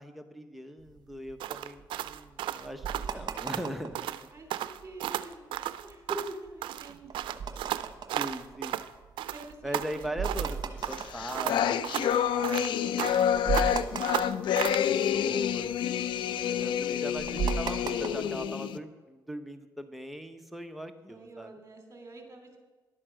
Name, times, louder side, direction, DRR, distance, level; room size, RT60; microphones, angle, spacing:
voice 1, 0.0-4.1 8.1-8.8 9.6-14.3 14.9-21.5, equal, ahead, 5 dB, 1.2 m, -40 dB
sound 1, 0.9-4.1 4.5-5.1 5.5-12.2 12.7-12.8 13.0-15.2 15.4-18.5, right 6 dB, 55° right, 1.1 m, -36 dB
sound 2, 1.4-3.7 3.9-4.2 4.5-6.4 6.6-8.9 9.2-10.6 10.8-13.3 13.5-14.9, right 12 dB, 80° right, 0.4 m, -34 dB
voice 2, 4.1-4.5 4.8-7.4 9.3-10.1 16.2-17.2 21.1-22.6, right 2 dB, 30° right, 3 dB, 3.3 m, -45 dB
sound 3, 10.9-18.8, left 9 dB, 75° left, 0.5 m, -28 dB
11.5 x 8.7 x 6.4 m, 1.2 s
cardioid pair, 75°, 8 cm